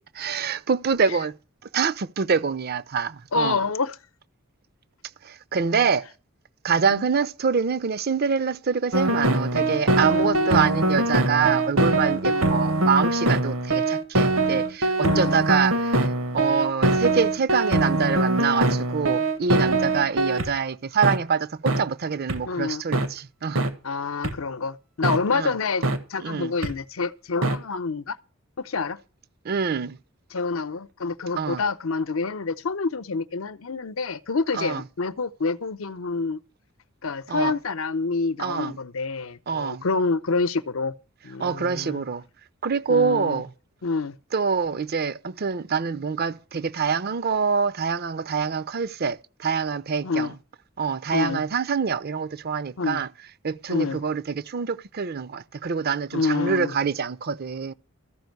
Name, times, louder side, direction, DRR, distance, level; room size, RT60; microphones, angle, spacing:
voice 1, 0.2-1.3 1.7-3.6 5.2-6.1 6.6-23.7 25.3-25.6 26.2-26.5 29.4-30.0 31.4-31.6 34.5-34.8 37.3-37.5 38.4-38.8 39.5-39.8 41.4-42.2 42.6-43.5 44.3-50.3 50.8-53.1 53.4-57.7, right 6 dB, 50° right, 0.6 m, -25 dB
voice 2, 3.3-3.9 6.9-7.1 10.1-10.7 12.2-12.6 15.0-15.4 22.4-22.8 23.8-28.2 28.6-29.0 30.3-36.4 37.0-40.9 41.2-42.0 42.9-43.4 43.8-44.1 50.0-50.3 51.1-51.4 52.8-53.0 53.7-54.0 56.1-56.7, left 4 dB, 80° left, 0.7 m, -27 dB
sound 1, 8.9-20.5 21.0-21.2 21.7-21.8 22.3-22.4 22.9-23.1 23.6-23.7 24.2-24.3 25.0-25.2 25.8-26.0 26.6-26.7 27.4-27.6, right 2 dB, 80° right, 1.5 m, -22 dB
14.0 x 5.2 x 9.2 m
head